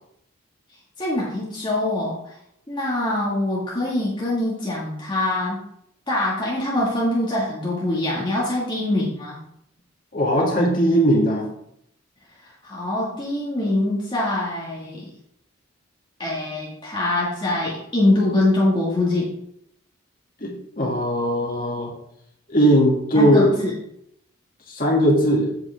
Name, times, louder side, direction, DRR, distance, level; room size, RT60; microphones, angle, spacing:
voice 1, 1.0-2.4 2.7-5.6 6.1-9.4 12.6-15.1 16.2-19.3 23.1-23.7, left 1 dB, 20° left, -6 dB, 1.8 m, -23 dB
voice 2, 10.1-11.4 20.4-21.9 22.5-23.5 24.7-25.5, equal, 40° left, -3 dB, 2.3 m, -19 dB
8.7 x 7.8 x 3.5 m, 0.75 s
head